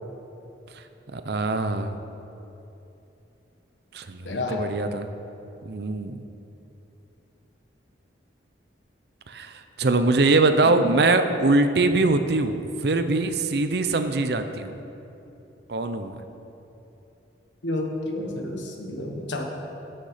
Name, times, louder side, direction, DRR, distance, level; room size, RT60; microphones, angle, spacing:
voice 1, 1.1-2.0 3.9-5.1 5.6-6.2 9.3-14.7 15.7-16.2, right 3 dB, 60° right, 9 dB, 0.6 m, -23 dB
voice 2, 4.2-4.6 10.6-10.8 17.6-19.5, left 2 dB, 80° left, 2 dB, 1.3 m, -30 dB
13.5 x 6.6 x 5.0 m, 2.9 s
head